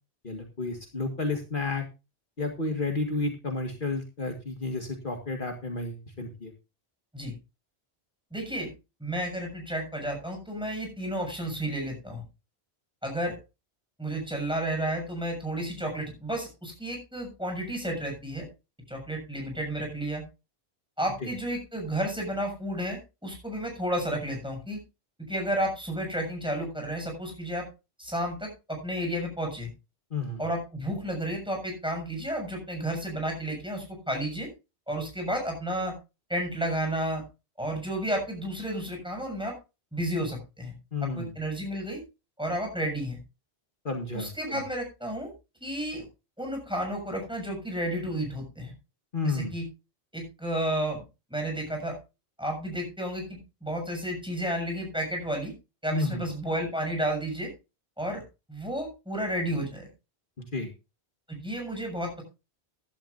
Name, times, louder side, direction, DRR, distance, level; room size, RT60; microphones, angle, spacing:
voice 1, 0.2-1.8 2.4-6.5 21.2-21.3 30.1-30.4 40.9-41.3 43.9-44.6 49.1-49.5 55.9-56.2 60.4-60.7, left 3 dB, 50° left, 2 dB, 2.0 m, -31 dB
voice 2, 8.3-8.7 9.0-12.2 13.0-13.4 14.0-18.5 18.9-20.2 21.0-24.8 25.3-27.7 28.0-29.7 30.4-34.5 34.9-35.9 36.3-37.2 37.6-39.5 39.9-40.7 41.2-42.0 42.4-43.2 44.1-45.3 45.6-46.0 46.4-48.7 49.2-49.6 50.1-51.0 51.3-52.0 52.4-55.5 55.8-57.5 58.0-58.2 58.5-59.9 61.3-62.2, right 1 dB, 5° right, 2 dB, 7.0 m, -32 dB
16.0 x 12.0 x 2.6 m, 0.29 s
omnidirectional pair, 1.1 m